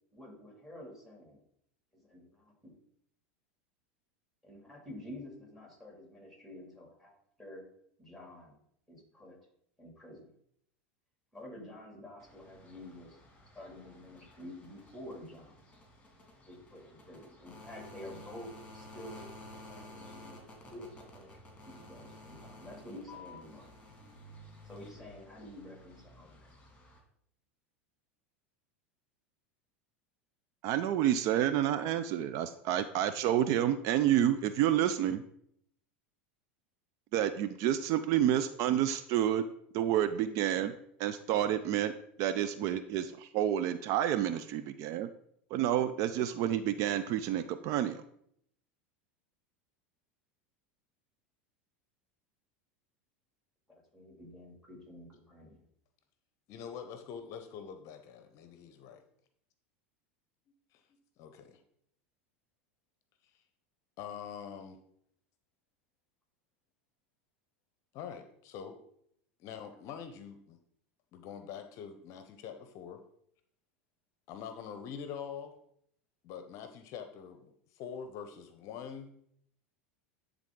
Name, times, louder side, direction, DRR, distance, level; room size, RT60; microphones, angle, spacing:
voice 1, 0.1-1.4 1.9-2.8 4.4-7.6 8.0-8.5 8.9-9.4 9.8-10.3 11.3-13.2 13.5-15.6 16.5-21.4 21.6-23.8 24.6-26.5 53.7-55.6, left 1 dB, ahead, 0 dB, 2.9 m, -49 dB
sound 1, 12.2-27.0, left 1 dB, 15° left, 2.3 m, -53 dB
voice 2, 30.6-35.2 37.1-39.4 39.7-40.7 41.0-41.9 42.2-45.1 45.5-48.0, right 11 dB, 55° right, 12 dB, 0.4 m, -29 dB
voice 3, 56.5-59.0 60.7-60.8 61.2-61.6 63.2-63.4 64.0-64.8 67.9-68.8 69.4-70.6 71.1-73.0 74.3-75.6 76.2-79.1, left 7 dB, 50° left, 8 dB, 0.7 m, -44 dB
10.5 x 3.6 x 3.8 m, 0.70 s
hypercardioid pair, 95°, 7 cm